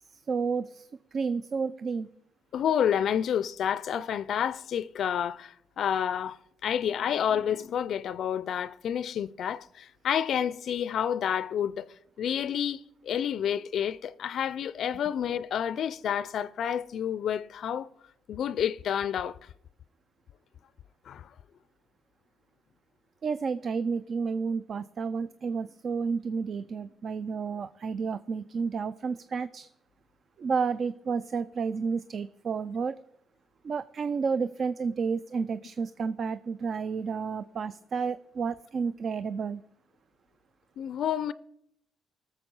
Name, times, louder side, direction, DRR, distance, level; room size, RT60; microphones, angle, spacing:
voice 1, 0.1-2.1 23.2-29.7 30.4-33.0 33.6-39.6, right 5 dB, 50° right, 0.4 m, -31 dB
voice 2, 2.5-6.4 6.6-17.9 18.3-19.4 21.1-21.3 40.8-41.3, left 9 dB, 65° left, 0.4 m, -29 dB
18.5 x 6.9 x 5.4 m
cardioid pair, 90°, 0 cm